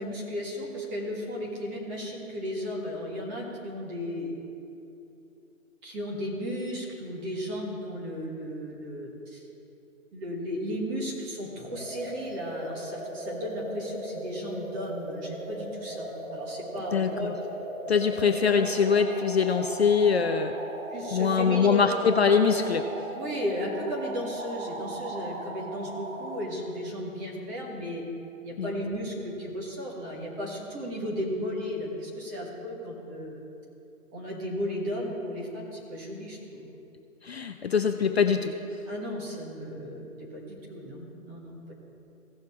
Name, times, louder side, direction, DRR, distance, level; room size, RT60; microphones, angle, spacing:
voice 1, 0.0-4.3 5.8-9.4 10.1-17.3 20.9-21.8 23.1-28.0 28.4-33.4 34.1-36.7 38.9-41.7, equal, 15° right, -3 dB, 1.3 m, -35 dB
sound 1, 11.7-26.4, right 1 dB, 55° right, 2.0 m, -38 dB
voice 2, 16.9-17.3 17.9-20.5 21.1-22.8 28.6-28.7 37.2-38.6, left 6 dB, 50° left, 7 dB, 0.5 m, -23 dB
16.5 x 6.4 x 3.6 m, 2.7 s
hypercardioid pair, 160°, 42 cm